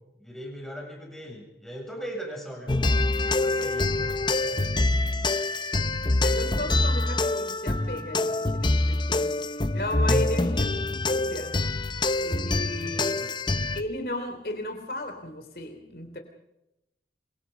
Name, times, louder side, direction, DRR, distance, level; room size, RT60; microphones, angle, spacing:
voice 1, 0.2-2.8 3.2-4.6 12.5-13.3, equal, ahead, 0 dB, 7.2 m, -40 dB
sound 1, 2.7-13.8, left 2 dB, 25° left, 0.8 m, -25 dB
voice 2, 6.2-11.5 12.2-13.2 13.7-16.2, left 1 dB, 60° left, 6 dB, 3.3 m, -35 dB
28.0 x 24.0 x 5.3 m, 0.87 s
head